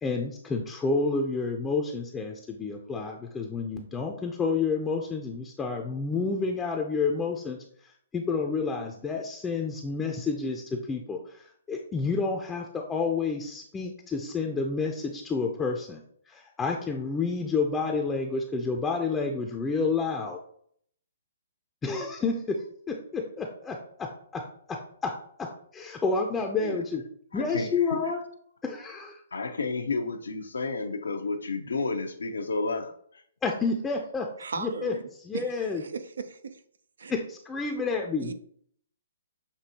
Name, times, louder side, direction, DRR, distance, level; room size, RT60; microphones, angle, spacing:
voice 1, 0.0-7.6 7.8-16.0 16.3-20.4 21.8-22.6 22.9-24.1 24.3-24.4 25.0-25.1 25.7-27.0 27.3-28.2 28.6-29.2 33.4-34.3 34.6-34.9 35.3-35.8 37.1-38.3, left 4 dB, 15° left, 2 dB, 0.5 m, -29 dB
voice 2, 27.3-27.7 29.3-32.9, left 3 dB, 85° left, 6 dB, 0.7 m, -31 dB
voice 3, 34.4-35.0 35.3-36.6 37.0-37.1 38.2-38.3, right 5 dB, 80° right, 10 dB, 0.5 m, -37 dB
6.9 x 2.7 x 2.9 m, 0.62 s
hypercardioid pair, 140°, 0 cm